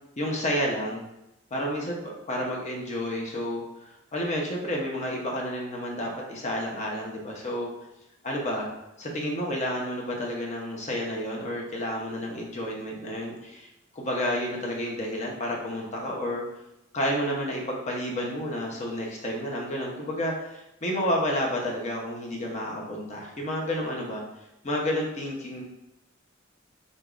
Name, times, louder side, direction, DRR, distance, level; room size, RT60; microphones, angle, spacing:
voice 1, 0.2-1.0 1.5-3.6 4.1-7.7 8.2-8.7 9.0-13.7 13.9-16.4 16.9-24.2 24.6-25.6, equal, 35° left, -1 dB, 0.7 m, -30 dB
3.9 x 3.5 x 2.4 m, 0.90 s
head